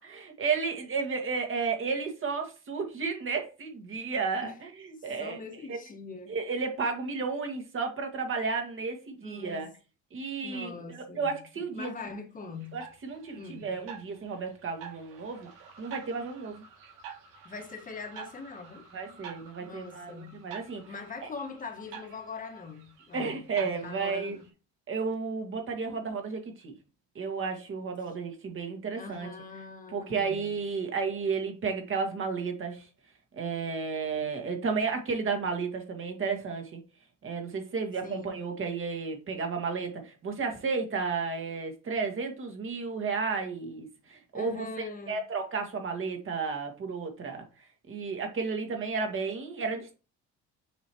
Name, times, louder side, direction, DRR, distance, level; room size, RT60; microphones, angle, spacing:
voice 1, 0.0-4.7 5.0-5.4 5.7-5.8 6.3-9.7 10.1-11.9 12.7-15.5 15.8-16.6 18.9-20.8 21.2-21.3 23.1-24.4 24.9-26.7 27.1-29.3 29.9-32.9 33.3-36.8 37.2-47.4 47.9-49.9, right 5 dB, 45° right, 1.9 m, -32 dB
voice 2, 5.0-6.4 9.2-9.7 10.4-12.8 13.4-13.8 17.4-19.2 19.6-20.5 20.8-24.4 28.9-30.6 38.0-38.3 44.3-45.2, left 4 dB, 25° left, 1.5 m, -42 dB
sound 1, 12.6-24.5, right 7 dB, 90° right, 2.4 m, -49 dB
7.0 x 4.9 x 3.0 m
cardioid pair, 125°, 30 cm